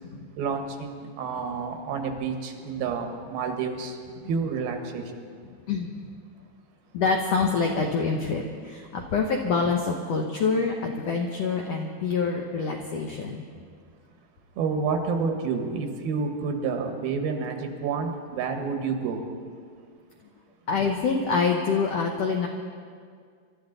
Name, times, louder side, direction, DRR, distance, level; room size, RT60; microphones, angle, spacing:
voice 1, 0.4-4.0 4.3-5.1 14.6-19.2, right 5 dB, 90° right, 4 dB, 3.2 m, -29 dB
voice 2, 6.9-13.4 20.7-22.5, left 4 dB, 80° left, 2 dB, 1.4 m, -26 dB
25.0 x 12.5 x 3.9 m, 2.1 s
omnidirectional pair, 4.2 m